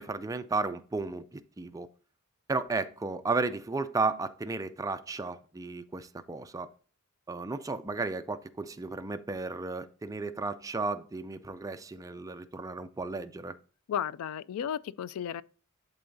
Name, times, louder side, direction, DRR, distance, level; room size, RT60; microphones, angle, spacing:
voice 1, 0.0-1.9 2.5-6.7 7.3-13.6, right 3 dB, 15° right, 0.4 m, -34 dB
voice 2, 13.9-15.4, left 9 dB, 80° left, 0.3 m, -34 dB
11.0 x 3.8 x 2.6 m
head